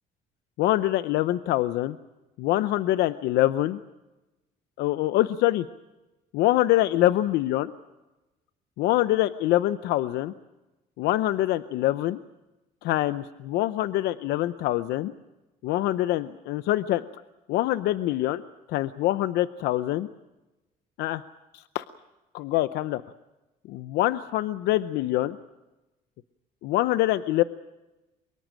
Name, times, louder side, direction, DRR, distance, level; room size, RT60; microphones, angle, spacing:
voice 1, 0.6-2.0 2.4-3.8 4.8-5.7 6.3-7.7 8.8-10.3 11.0-12.2 12.8-15.1 15.6-17.0 17.5-18.4 18.7-20.1 21.0-21.2 21.5-21.8 22.3-23.0 23.7-25.4 26.6-27.4, left 15 dB, 85° left, 13 dB, 0.7 m, -24 dB
23.5 x 22.5 x 6.2 m, 1.0 s
cardioid pair, 110°, 17 cm